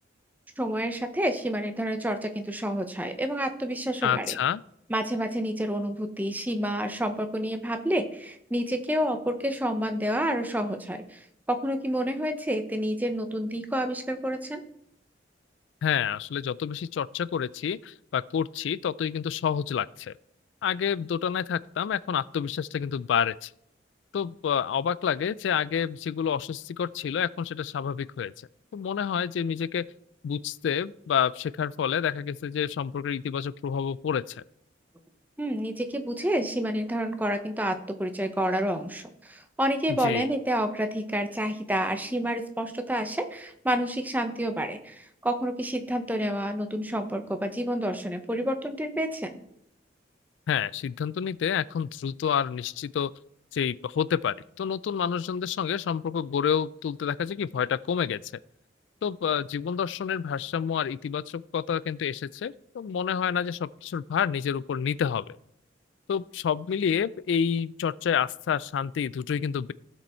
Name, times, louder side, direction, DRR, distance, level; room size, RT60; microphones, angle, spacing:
voice 1, 0.6-4.4 4.9-11.2 11.5-14.6 35.4-49.4, equal, 10° right, 0.8 m, -29 dB
voice 2, 4.0-4.6 15.8-20.1 20.6-23.5 24.1-28.3 28.7-29.9 30.2-34.4 39.9-40.3 50.5-53.1 53.5-58.2 59.0-65.4 66.1-69.7, left 7 dB, 80° left, 0.3 m, -28 dB
15.0 x 5.2 x 4.4 m
head